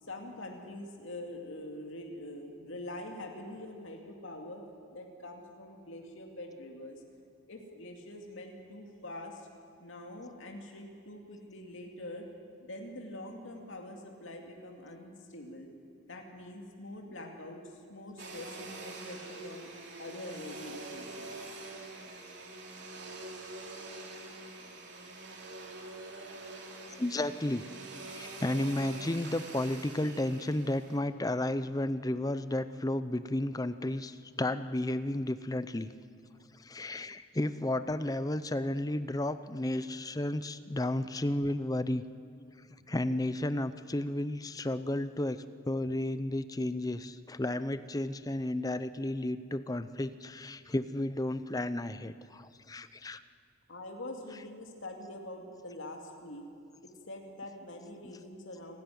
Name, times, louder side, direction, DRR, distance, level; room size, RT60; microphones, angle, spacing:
voice 1, 0.0-4.6 4.9-7.0 7.5-9.5 9.8-12.3 12.6-15.7 16.1-19.7 20.0-21.4 53.7-56.4 57.1-58.8, left 1 dB, 70° left, 1 dB, 2.5 m, -44 dB
Domestic sounds home sounds, 18.2-31.0, right 2 dB, 60° right, 3.2 m, -45 dB
voice 2, 26.9-27.6 28.1-35.9 36.5-42.0 42.9-53.2, left 1 dB, 20° left, 13 dB, 0.6 m, -33 dB
28.0 x 13.0 x 9.4 m, 2.3 s
head